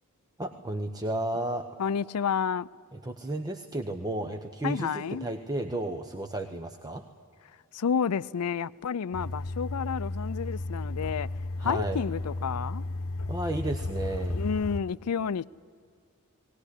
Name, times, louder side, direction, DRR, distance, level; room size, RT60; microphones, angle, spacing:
voice 1, 0.4-1.7 3.0-7.0 11.6-12.0 13.3-14.4, right 1 dB, 15° right, 0.9 m, -33 dB
voice 2, 1.8-2.7 4.6-5.3 7.7-11.3 11.6-12.8 14.3-15.4, left 6 dB, 85° left, 0.5 m, -30 dB
sound 1, 9.1-14.8, left 2 dB, 65° left, 0.9 m, -34 dB
19.5 x 19.0 x 9.9 m
head